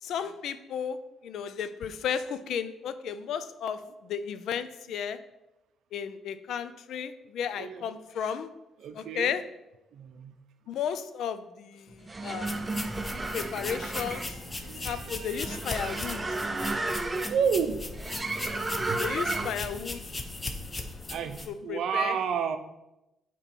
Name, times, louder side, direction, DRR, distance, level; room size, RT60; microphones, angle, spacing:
voice 1, 0.0-1.0 1.2-5.2 5.9-8.5 9.0-9.4 10.7-12.7 13.3-14.4 14.8-16.4 19.0-20.0 21.5-22.2, left 7 dB, 75° left, 12 dB, 0.4 m, -34 dB
voice 2, 7.5-7.9 8.8-9.3 9.9-10.4 14.2-16.8 17.3-17.8 18.8-19.0 21.1-22.6, right 7 dB, 70° right, 9 dB, 0.5 m, -32 dB
sound 1, 11.9-19.7, right 2 dB, 20° right, 0.5 m, -33 dB
sound 2, 12.5-21.5, left 2 dB, 25° left, 0.7 m, -38 dB
6.7 x 3.0 x 5.9 m, 0.93 s
cardioid pair, 90°, 0 cm